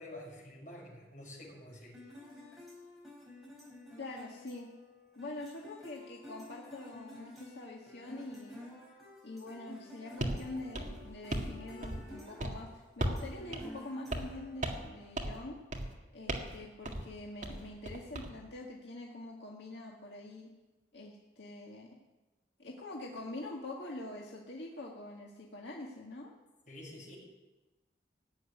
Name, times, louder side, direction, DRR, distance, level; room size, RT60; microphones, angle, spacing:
voice 1, 0.0-2.0 26.7-27.2, left 1 dB, 45° left, -3 dB, 6.6 m, -48 dB
sound 1, 1.9-15.1, left 1 dB, ahead, 4.4 m, -52 dB
voice 2, 4.0-4.7 5.2-8.6 9.2-15.6 16.1-20.5 20.9-21.9 22.6-26.3, left 2 dB, 80° left, -2 dB, 1.9 m, -45 dB
sound 2, 10.2-10.4 10.7-11.5 11.8-12.1 12.4-12.6 13.0-13.3 13.5-13.6 14.1-14.4 14.6-14.9 15.2-15.4 15.7-15.9 16.3-16.6 16.9-17.1 17.4-18.3, right 1 dB, 45° right, 1.9 m, -36 dB
17.5 x 8.0 x 9.9 m, 1.1 s
head